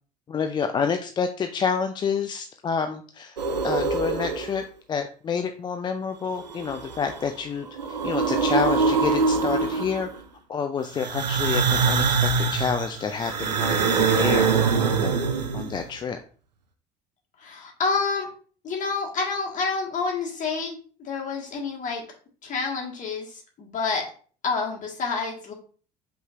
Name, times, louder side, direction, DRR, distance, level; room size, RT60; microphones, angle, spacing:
voice 1, 0.3-4.6 4.9-10.1 10.5-15.1 15.5-16.2, left 6 dB, 20° left, 7 dB, 0.3 m, -28 dB
sound 1, 3.4-4.6 6.4-7.3 7.6-10.2 11.0-15.8, right 5 dB, 90° right, 0.5 m, -24 dB
voice 2, 17.4-18.3 18.6-22.0 22.4-24.0 24.4-25.5, left 4 dB, 40° left, -1 dB, 1.5 m, -28 dB
5.0 x 3.3 x 2.4 m, 0.42 s
figure-of-eight pair, 65°, 21 cm